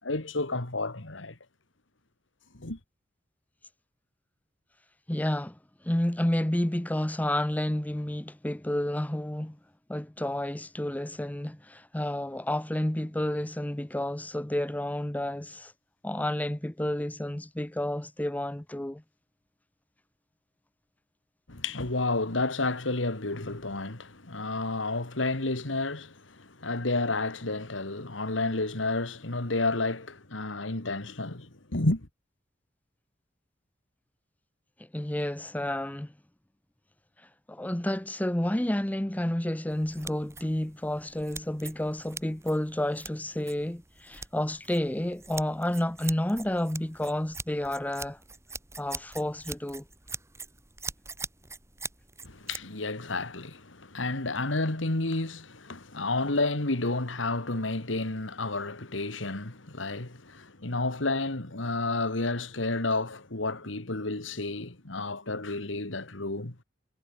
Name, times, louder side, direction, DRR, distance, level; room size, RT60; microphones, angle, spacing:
voice 1, 0.0-1.4 2.5-2.8 21.5-32.1 52.2-66.5, left 2 dB, 80° left, 2.4 m, -31 dB
voice 2, 5.1-5.6 5.8-9.6 9.9-15.7 16.0-19.0 34.8-36.1 37.5-48.2 48.8-49.8, left 1 dB, 10° left, 0.6 m, -30 dB
sound 1, 39.7-52.7, right 4 dB, 15° right, 3.6 m, -43 dB
head